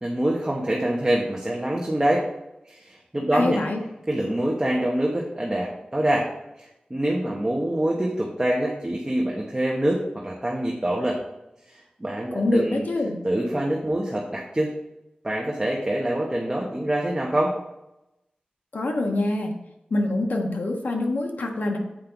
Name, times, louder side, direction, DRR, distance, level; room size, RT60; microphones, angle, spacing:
voice 1, 0.0-2.2 2.7-3.6 4.1-6.3 6.6-11.2 12.0-12.8 13.2-14.7 15.2-17.6, right 1 dB, 20° right, -2 dB, 1.2 m, -25 dB
voice 2, 3.3-3.8 12.3-13.2 18.7-19.5 19.9-21.8, left 2 dB, 75° left, 2 dB, 1.3 m, -25 dB
7.6 x 5.4 x 3.9 m, 0.91 s
wide cardioid pair, 80°, 3 cm